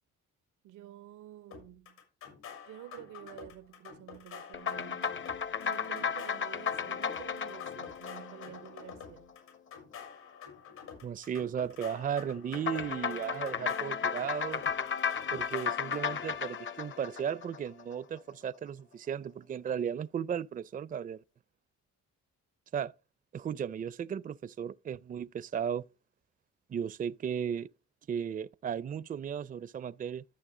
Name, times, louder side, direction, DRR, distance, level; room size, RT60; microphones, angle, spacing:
voice 1, 0.6-2.0 2.7-5.3 5.6-9.3, right 13 dB, 80° right, 0.7 m, -50 dB
sound 1, 1.5-16.4, left 7 dB, 90° left, 6.6 m, -49 dB
sound 2, 4.5-9.2 12.5-17.9, left 7 dB, 40° left, 0.7 m, -34 dB
voice 2, 11.0-14.6 15.3-21.2 22.7-22.9 23.3-25.8 26.7-27.7 28.1-30.2, right 8 dB, 30° right, 0.4 m, -35 dB
13.5 x 6.7 x 3.7 m
cardioid pair, 90°, 30 cm